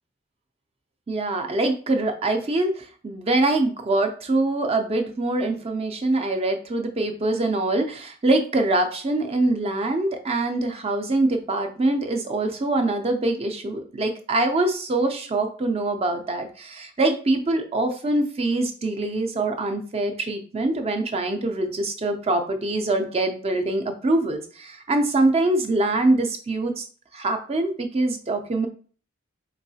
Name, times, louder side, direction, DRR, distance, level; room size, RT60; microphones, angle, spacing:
voice 1, 1.1-26.8 27.1-28.7, right 2 dB, 30° right, 6 dB, 0.5 m, -24 dB
4.5 x 3.0 x 2.7 m, 0.42 s
head